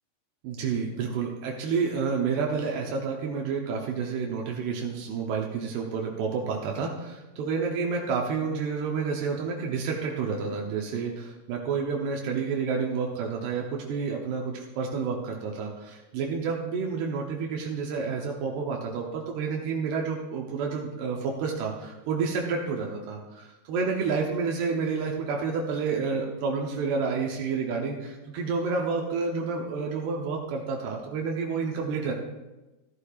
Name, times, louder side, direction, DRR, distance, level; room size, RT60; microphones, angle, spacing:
voice 1, 0.4-32.1, right 5 dB, 85° right, 0 dB, 3.1 m, -29 dB
14.0 x 11.5 x 2.4 m, 1.1 s
omnidirectional pair, 4.6 m